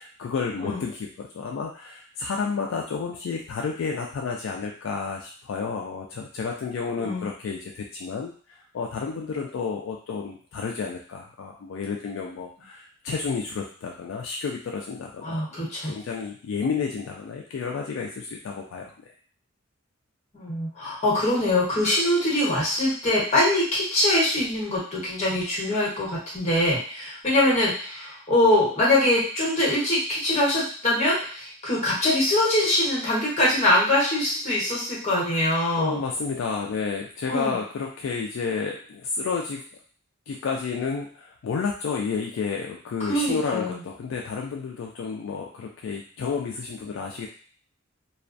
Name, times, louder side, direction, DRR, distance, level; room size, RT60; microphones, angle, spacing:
voice 1, 0.0-15.4 15.9-18.9 35.8-39.6 40.3-47.3, left 5 dB, 70° left, 0 dB, 0.3 m, -31 dB
voice 2, 7.0-7.3 15.2-15.9 20.3-36.0 37.3-37.6 43.0-43.8, left 1 dB, 35° left, -6 dB, 1.0 m, -23 dB
2.3 x 2.2 x 2.5 m, 0.43 s
head